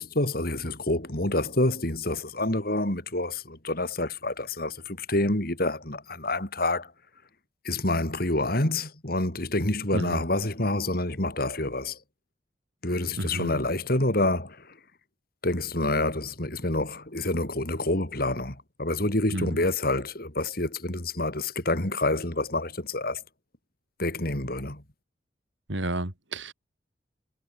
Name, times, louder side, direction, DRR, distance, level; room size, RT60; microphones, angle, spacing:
voice 1, 0.0-6.9 7.6-12.0 12.8-14.7 15.4-23.2 24.0-24.8, left 2 dB, 55° left, 4.0 m, -27 dB
voice 2, 13.2-13.5 19.3-19.6 25.7-26.5, right 1 dB, 80° right, 3.4 m, -31 dB
head